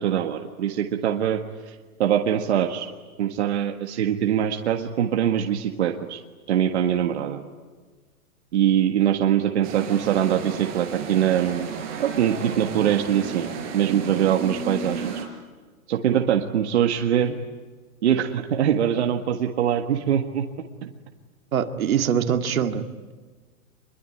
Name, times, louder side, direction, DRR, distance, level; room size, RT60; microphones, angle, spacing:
voice 1, 0.0-1.4 1.7-2.9 3.2-6.2 6.5-7.4 8.5-11.7 12.0-15.1 15.9-17.4 18.0-20.5 20.8-20.9, right 10 dB, 45° right, 4 dB, 1.7 m, -23 dB
sound 1, 9.6-15.2, right 6 dB, 30° right, 4.9 m, -33 dB
voice 2, 21.5-23.1, right 8 dB, 65° right, 7 dB, 2.2 m, -24 dB
25.5 x 23.0 x 9.9 m, 1.4 s
hypercardioid pair, 175°, 45 cm